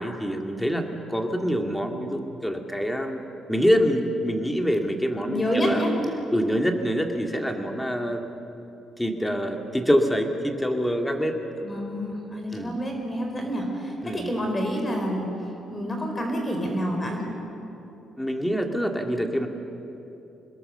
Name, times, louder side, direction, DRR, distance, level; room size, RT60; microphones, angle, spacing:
voice 1, 0.0-3.2 3.5-5.8 6.3-8.2 9.0-11.4 12.5-12.7 14.0-14.3 18.2-19.5, equal, 5° left, 3 dB, 2.3 m, -25 dB
voice 2, 5.2-5.9 11.6-15.3 15.7-17.2, equal, 25° left, 2 dB, 4.5 m, -28 dB
26.5 x 21.0 x 6.8 m, 3.0 s
cardioid pair, 90°, 0 cm